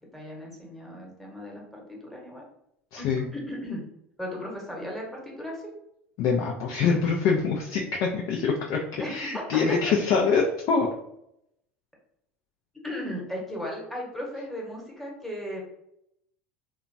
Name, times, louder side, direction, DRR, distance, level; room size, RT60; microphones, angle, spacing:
voice 1, 0.1-2.4 3.0-3.1 3.3-3.8 4.2-5.7 9.0-9.9 12.8-15.6, left 1 dB, 5° left, -2 dB, 1.0 m, -36 dB
voice 2, 2.9-3.2 6.2-10.9, left 5 dB, 55° left, 0 dB, 0.4 m, -25 dB
2.8 x 2.2 x 2.6 m, 0.79 s
hypercardioid pair, 80°, 7 cm